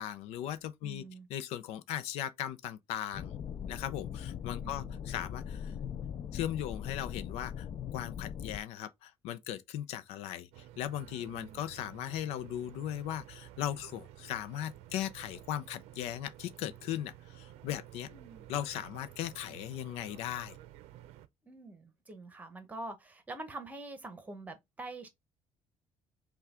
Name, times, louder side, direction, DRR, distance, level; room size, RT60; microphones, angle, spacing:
voice 1, 0.0-1.0 1.3-3.4 3.7-5.7 6.3-7.7 7.9-18.1 18.5-20.6, left 11 dB, 85° left, 0.5 m, -38 dB
voice 2, 0.8-1.3 4.6-5.0 11.3-11.6 18.1-18.4 21.4-25.1, right 2 dB, 15° right, 0.9 m, -45 dB
sound 1, 3.1-8.6, left 8 dB, 35° left, 0.4 m, -40 dB
sound 2, 10.5-21.3, right 13 dB, 90° right, 0.6 m, -52 dB
5.6 x 2.3 x 3.6 m
cardioid pair, 150°, 11 cm